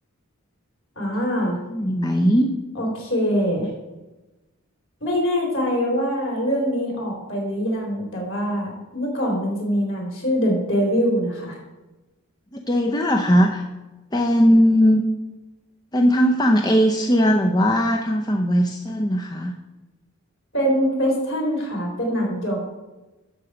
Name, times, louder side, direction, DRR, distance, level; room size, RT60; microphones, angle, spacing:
voice 1, 1.0-1.6 2.8-3.7 5.0-11.6 20.5-22.6, equal, 60° left, -1 dB, 3.7 m, -23 dB
voice 2, 1.7-2.5 12.5-13.6 14.1-15.0 15.9-19.5, equal, 20° left, 2 dB, 0.6 m, -19 dB
12.0 x 4.8 x 6.9 m, 1.1 s
head